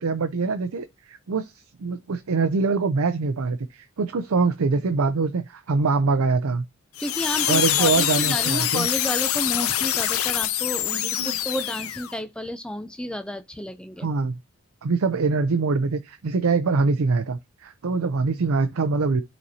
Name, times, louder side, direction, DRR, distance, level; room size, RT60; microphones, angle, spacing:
voice 1, 0.0-1.5 1.8-6.6 7.5-8.9 11.0-11.4 14.0-14.3 14.8-19.2, right 4 dB, 90° right, 0.5 m, -24 dB
sound 1, 7.0-12.1, left 11 dB, 85° left, 0.6 m, -25 dB
voice 2, 7.0-14.1, equal, 5° left, 0.4 m, -31 dB
12.5 x 4.2 x 2.7 m
head